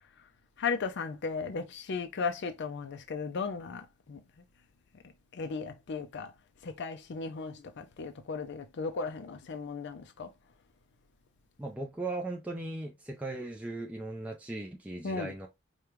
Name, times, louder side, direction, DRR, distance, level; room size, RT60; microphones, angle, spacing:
voice 1, 0.6-4.2 5.3-6.3 6.6-10.3 15.0-15.3, left 4 dB, 60° left, 0.5 m, -36 dB
voice 2, 11.6-15.5, right 2 dB, 5° right, 0.5 m, -38 dB
5.0 x 2.3 x 3.0 m
head